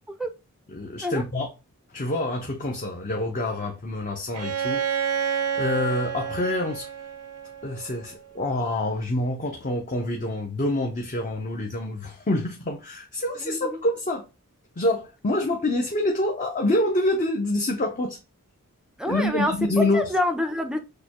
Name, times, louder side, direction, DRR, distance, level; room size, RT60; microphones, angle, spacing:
voice 1, 0.7-1.5 1.9-4.8 5.6-6.9 7.6-14.2 14.8-18.2 19.1-20.0, left 1 dB, 35° left, 0.7 m, -26 dB
Bowed string instrument, 4.3-8.1, right 7 dB, 85° right, 0.8 m, -29 dB
voice 2, 13.4-13.7 19.0-20.8, left 1 dB, 5° right, 0.5 m, -27 dB
6.5 x 2.2 x 2.9 m
head